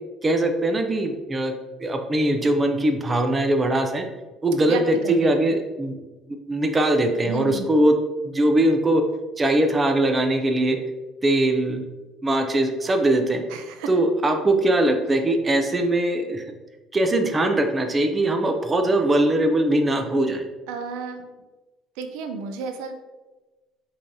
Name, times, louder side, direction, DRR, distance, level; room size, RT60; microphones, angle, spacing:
voice 1, 0.2-1.5 1.8-4.1 4.4-6.0 6.5-7.9 8.2-9.0 9.4-10.8 11.2-11.9 12.2-13.4 13.9-16.5 16.9-20.4, right 1 dB, 20° right, 5 dB, 0.5 m, -21 dB
voice 2, 4.6-5.5 7.2-7.7 13.5-13.9 20.7-21.2 22.0-22.9, right 5 dB, 90° right, 6 dB, 0.5 m, -32 dB
5.5 x 3.3 x 2.7 m, 1.2 s
cardioid pair, 135°, 0 cm